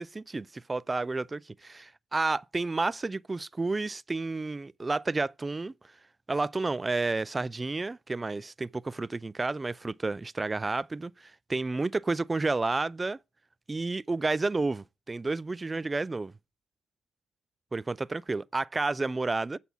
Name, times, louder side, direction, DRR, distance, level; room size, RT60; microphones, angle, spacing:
voice 1, 0.0-5.7 6.3-13.2 13.7-16.3 17.7-19.6, right 3 dB, 25° right, 0.4 m, -31 dB
7.9 x 4.2 x 6.9 m
hypercardioid pair, 45°, 0 cm